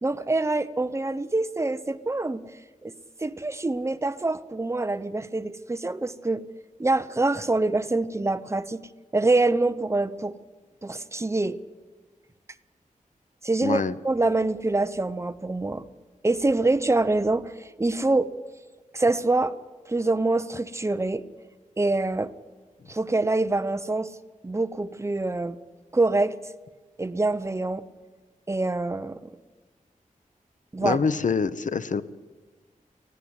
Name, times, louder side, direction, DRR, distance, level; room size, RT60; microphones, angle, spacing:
voice 1, 0.0-2.4 2.8-2.9 3.2-6.4 6.8-8.8 9.1-10.4 10.8-11.6 13.4-15.8 16.2-18.3 18.9-19.5 19.9-21.2 21.8-22.3 22.9-24.1 24.4-25.6 25.9-26.4 27.0-27.8 28.5-29.2 30.7-31.0, right 2 dB, 20° right, 12 dB, 0.8 m, -25 dB
voice 2, 13.6-13.9 30.8-32.0, left 5 dB, 65° left, 14 dB, 0.9 m, -25 dB
19.5 x 14.5 x 9.7 m, 1.3 s
wide cardioid pair, 115°, 14 cm